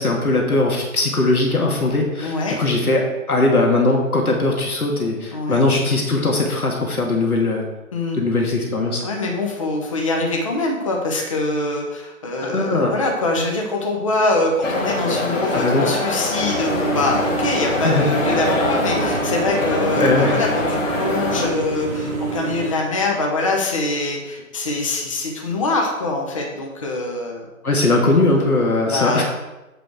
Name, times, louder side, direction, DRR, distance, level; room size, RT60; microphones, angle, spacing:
voice 1, 0.0-7.7 8.1-9.0 12.5-12.9 15.5-15.9 17.8-18.0 20.0-20.3 27.6-29.2, left 2 dB, 80° left, 0 dB, 1.8 m, -19 dB
voice 2, 2.2-2.6 5.3-5.6 7.9-8.2 9.0-27.5 28.9-29.2, left 2 dB, 25° left, 0 dB, 0.8 m, -24 dB
sound 1, 14.6-21.5, left 2 dB, 60° left, 1.7 m, -24 dB
sound 2, 16.4-22.7, right 4 dB, 15° right, 1.2 m, -27 dB
8.2 x 5.0 x 4.6 m, 1.0 s
figure-of-eight pair, 150°, 43 cm